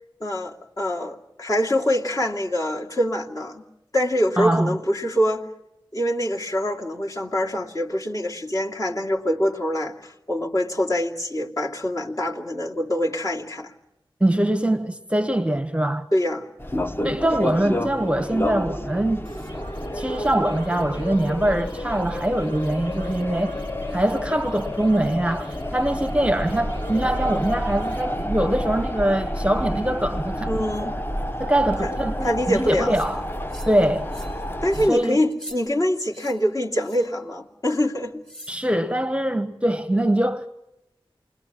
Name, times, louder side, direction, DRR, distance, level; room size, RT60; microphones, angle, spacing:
voice 1, 0.2-3.6 3.9-5.5 5.9-13.7 16.1-16.5 30.5-31.0 31.8-31.9 32.2-33.0 34.6-38.2, equal, 40° left, 2.6 m, -24 dB
voice 2, 4.4-4.8 14.2-16.1 17.0-19.3 19.9-23.6 23.9-30.5 30.8-30.9 31.4-33.3 33.7-34.1 34.8-35.2 38.5-40.5, right 1 dB, 15° right, 0.9 m, -23 dB
sound 1, 16.6-34.9, left 1 dB, 25° left, 0.8 m, -30 dB
raw epdf, 19.2-28.1, equal, 70° left, 4.4 m, -46 dB
sound 2, 32.9-33.1 33.5-33.8 34.1-34.4 34.7-34.9 35.3-35.6 36.1-36.4 36.8-37.1 38.2-38.6, right 1 dB, 5° left, 6.1 m, -42 dB
29.0 x 21.5 x 5.9 m
wide cardioid pair, 70°, 9 cm